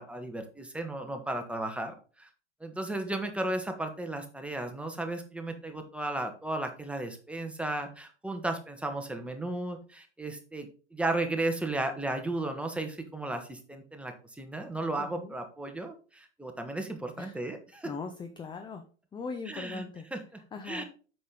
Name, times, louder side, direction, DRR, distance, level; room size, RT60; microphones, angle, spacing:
voice 1, 0.0-2.3 2.6-17.9 19.5-19.8 20.1-20.2 20.7-20.8, right 2 dB, 5° right, 5 dB, 1.4 m, -34 dB
voice 2, 15.0-15.3 17.2-17.4 17.8-18.8 19.1-20.1 20.3-20.8, left 4 dB, 15° left, 7 dB, 0.7 m, -40 dB
8.3 x 6.1 x 3.8 m, 0.38 s
figure-of-eight pair, 90°, 35 cm